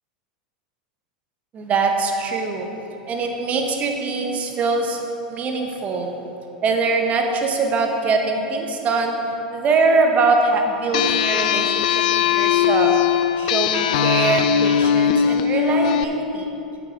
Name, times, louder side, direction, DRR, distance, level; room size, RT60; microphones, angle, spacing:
voice 1, 1.5-2.7 3.1-5.0 5.3-6.1 6.6-9.2 9.5-12.9 13.4-16.5, right 3 dB, 35° right, 3 dB, 1.3 m, -22 dB
sound 1, 10.9-16.0, left 9 dB, 65° left, 0.4 m, -19 dB
8.6 x 7.6 x 4.8 m, 2.9 s
hypercardioid pair, 95°, 4 cm